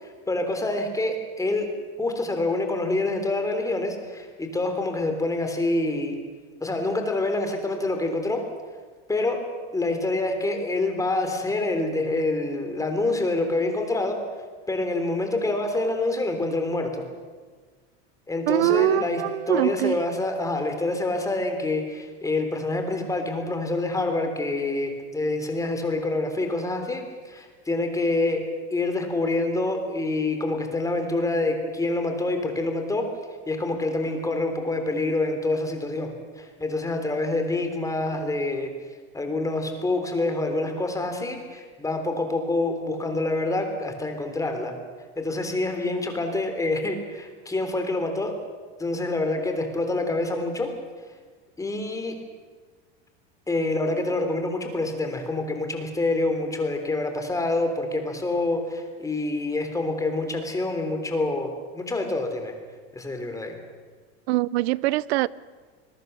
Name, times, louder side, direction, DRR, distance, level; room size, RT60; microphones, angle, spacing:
voice 1, 0.0-1.7 2.0-6.2 6.6-8.4 9.1-9.4 9.7-14.2 14.7-17.1 18.3-28.4 28.7-33.1 33.5-38.7 39.1-44.7 45.2-48.4 48.8-50.7 51.6-52.2 53.5-62.5 62.9-63.6, left 2 dB, 10° left, 3.5 m, -26 dB
voice 2, 18.5-20.0 64.3-65.3, right 18 dB, 80° right, 0.7 m, -23 dB
26.0 x 21.5 x 6.9 m
supercardioid pair, 145°, 32 cm